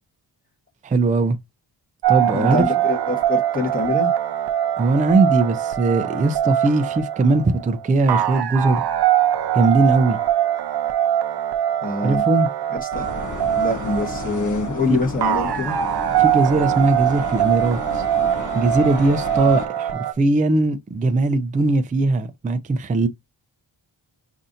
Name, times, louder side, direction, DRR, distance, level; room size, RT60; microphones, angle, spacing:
voice 1, 0.8-1.4 2.1-2.6 4.8-8.8 9.5-10.2 12.0-12.5 16.2-18.0 18.5-23.1, right 3 dB, 20° right, 0.3 m, -20 dB
sound 1, 2.0-20.1, right 11 dB, 60° right, 0.6 m, -22 dB
voice 2, 2.3-4.1 11.8-12.2 12.7-13.1 13.5-15.8, left 3 dB, 20° left, 1.1 m, -25 dB
sound 2, 12.9-19.7, left 4 dB, 45° left, 0.6 m, -33 dB
5.5 x 2.6 x 2.5 m
wide cardioid pair, 115°, 45 cm